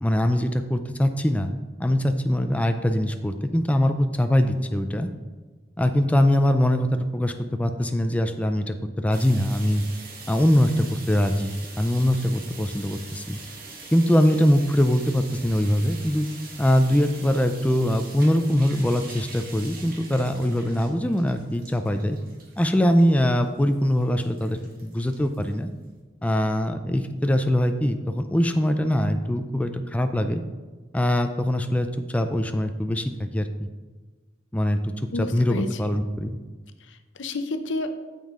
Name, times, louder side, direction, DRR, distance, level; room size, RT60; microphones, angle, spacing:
voice 1, 0.0-5.1 5.8-9.8 10.3-13.4 13.9-16.3 16.6-22.2 22.6-25.7 26.2-30.4 30.9-33.7 34.5-34.9 35.2-36.4, equal, 10° left, 7 dB, 0.4 m, -22 dB
sound 1, 9.1-26.0, right 3 dB, 50° right, 1.4 m, -43 dB
voice 2, 35.1-35.8 36.8-37.9, left 2 dB, 85° left, 8 dB, 0.7 m, -30 dB
9.1 x 7.2 x 3.7 m, 1.3 s
head